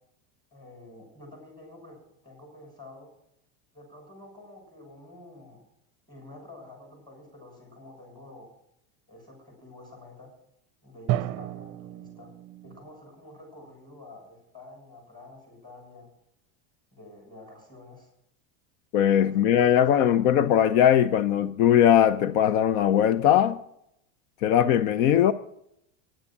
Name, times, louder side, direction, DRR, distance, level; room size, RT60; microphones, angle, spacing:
voice 1, 0.5-3.1 3.7-5.6 6.1-8.5 9.1-10.3 10.8-12.3 12.6-16.1 16.9-18.1 19.2-20.6, left 2 dB, 10° left, 6.6 m, -48 dB
Drum, 11.1-13.0, right 14 dB, 40° right, 0.6 m, -32 dB
voice 2, 18.9-23.6 24.4-25.3, left 10 dB, 80° left, 0.8 m, -20 dB
10.5 x 9.8 x 7.2 m
supercardioid pair, 150°, 41 cm